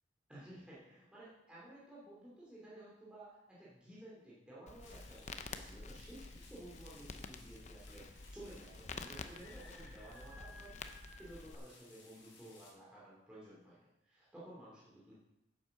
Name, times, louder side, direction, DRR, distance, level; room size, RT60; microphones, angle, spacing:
voice 1, 0.3-10.8 11.2-15.1, right 1 dB, 5° right, -8 dB, 2.8 m, -54 dB
Crackle, 4.7-11.5, left 3 dB, 35° left, 0.7 m, -49 dB
sound 1, 4.8-12.7, left 3 dB, 75° left, 3.7 m, -60 dB
10.0 x 7.9 x 6.6 m, 0.92 s
head